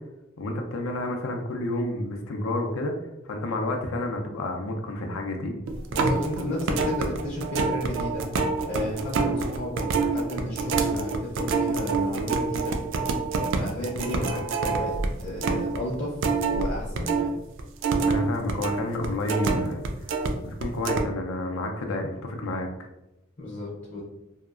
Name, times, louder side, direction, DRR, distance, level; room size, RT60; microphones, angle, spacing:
voice 1, 0.4-2.9 3.2-5.7 18.0-20.1 20.4-22.7, left 1 dB, 90° left, 3 dB, 0.5 m, -30 dB
sound 1, 5.7-17.3 17.6-20.3 20.6-21.0, right 4 dB, 65° right, 0.3 m, -26 dB
voice 2, 5.9-8.2 8.6-12.7 13.5-14.9 15.2-16.1 16.5-17.4 23.4-24.0, left 1 dB, 35° left, -6 dB, 0.6 m, -33 dB
2.8 x 2.3 x 2.3 m, 0.93 s
head